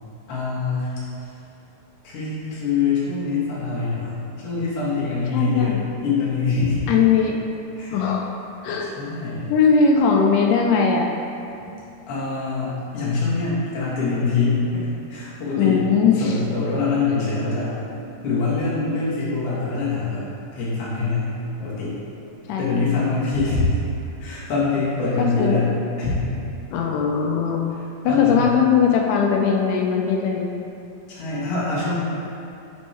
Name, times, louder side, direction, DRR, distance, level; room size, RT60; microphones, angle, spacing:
voice 1, 0.3-0.9 1.2-1.3 2.0-5.8 6.0-6.8 7.8-8.0 9.0-9.5 12.1-15.8 16.2-17.8 18.2-21.3 21.6-22.0 22.6-23.8 24.2-25.7 26.0-26.1 28.1-28.4 31.1-31.9, left 4 dB, 50° left, -8 dB, 2.2 m, -24 dB
voice 2, 5.3-5.8 6.9-7.4 7.9-8.3 8.6-8.9 9.5-11.1 15.6-16.4 22.5-22.8 25.2-25.7 26.7-27.7 28.0-30.5, left 6 dB, 80° left, 1 dB, 2.0 m, -19 dB
8.4 x 4.4 x 3.3 m, 2.7 s
omnidirectional pair, 4.0 m